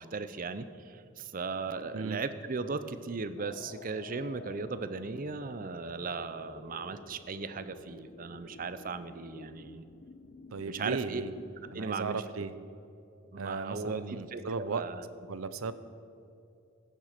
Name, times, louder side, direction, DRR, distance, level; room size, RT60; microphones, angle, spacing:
voice 1, 0.0-9.9 10.7-11.2 11.7-12.2 13.3-15.0, right 4 dB, 40° right, 11 dB, 0.6 m, -37 dB
sound 1, 3.4-11.7, left 4 dB, 40° left, 0.5 m, -51 dB
voice 2, 10.5-11.3 11.7-12.5 13.4-14.8 15.3-15.7, right 4 dB, 85° right, 13 dB, 0.6 m, -36 dB
15.0 x 7.4 x 6.6 m, 2.6 s
head